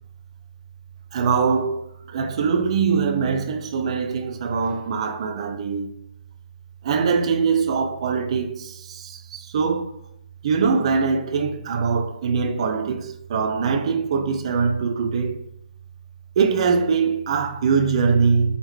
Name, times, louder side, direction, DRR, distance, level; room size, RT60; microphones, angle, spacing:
voice 1, 1.1-6.0 6.8-10.0 10.4-15.5 16.4-18.6, right 5 dB, 40° right, 0.5 m, -22 dB
3.7 x 3.5 x 3.1 m
figure-of-eight pair, 135°, 5 cm